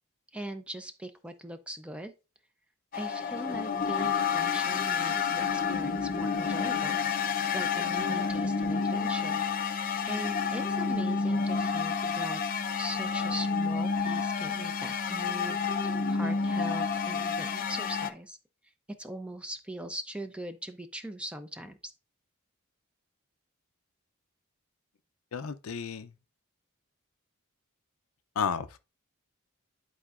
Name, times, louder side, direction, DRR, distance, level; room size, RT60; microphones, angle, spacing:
voice 1, 0.3-2.1 2.9-9.4 9.7-12.4 12.8-18.4 19.0-21.9, right 1 dB, 5° right, 0.5 m, -41 dB
sound 1, 2.9-18.1, left 5 dB, 40° left, 0.5 m, -29 dB
voice 2, 25.3-26.1 28.4-28.8, left 6 dB, 90° left, 0.6 m, -32 dB
11.0 x 4.3 x 2.4 m
head